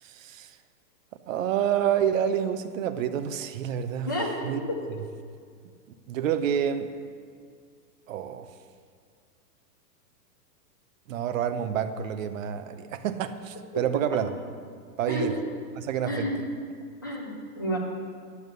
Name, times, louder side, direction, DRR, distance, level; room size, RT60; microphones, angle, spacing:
voice 1, 0.0-0.6 1.3-4.1 4.4-4.6 6.1-6.9 8.1-8.5 11.1-14.3 15.0-15.4 15.7-16.4, right 9 dB, 50° right, 9 dB, 0.8 m, -28 dB
voice 2, 4.0-4.8 15.1-15.3 16.1-16.4 17.0-17.8, equal, 15° left, -4 dB, 0.4 m, -30 dB
11.0 x 7.2 x 8.0 m, 2.1 s
supercardioid pair, 170°, 49 cm